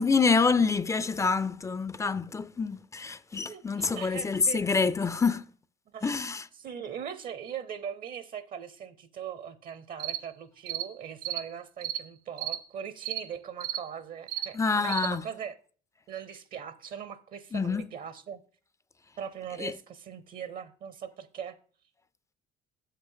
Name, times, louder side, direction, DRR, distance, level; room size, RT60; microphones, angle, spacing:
voice 1, 0.0-5.4 6.0-6.4 14.5-15.2 17.5-17.9 19.6-19.7, left 4 dB, 20° left, 0.4 m, -27 dB
voice 2, 3.5-4.6 5.9-6.3 6.6-15.6 16.1-18.4 19.2-21.6, right 8 dB, 55° right, 0.7 m, -40 dB
sound 1, 10.0-10.2 10.7-10.9 11.2-11.4 11.8-12.0 12.4-12.6 13.0-13.2 13.6-13.8 14.3-14.5 14.9-15.1, right 12 dB, 90° right, 1.6 m, -33 dB
7.4 x 5.6 x 5.6 m
cardioid pair, 110°, 17 cm